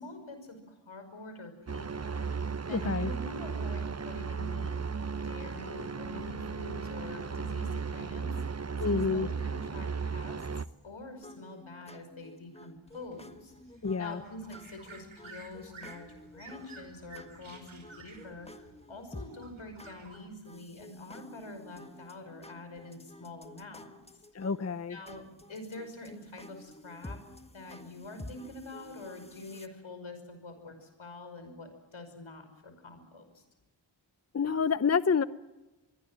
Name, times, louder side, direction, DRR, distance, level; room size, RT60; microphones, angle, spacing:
voice 1, 0.0-4.8 5.2-10.5 10.8-13.5 14.0-24.2 24.9-27.2 27.5-33.4, left 2 dB, 80° left, 8 dB, 5.7 m, -46 dB
sound 1, 1.7-10.7, right 5 dB, 30° right, 0.9 m, -35 dB
voice 2, 2.7-3.1 8.8-9.3 13.8-14.2 24.3-25.0 34.3-35.2, left 5 dB, 35° left, 15 dB, 0.7 m, -28 dB
sound 2, 11.2-29.7, left 1 dB, 10° left, 1.6 m, -51 dB
sound 3, 12.9-20.2, right 4 dB, 80° right, 5.7 m, -53 dB
26.0 x 21.5 x 7.6 m, 1.1 s
cardioid pair, 55°, 48 cm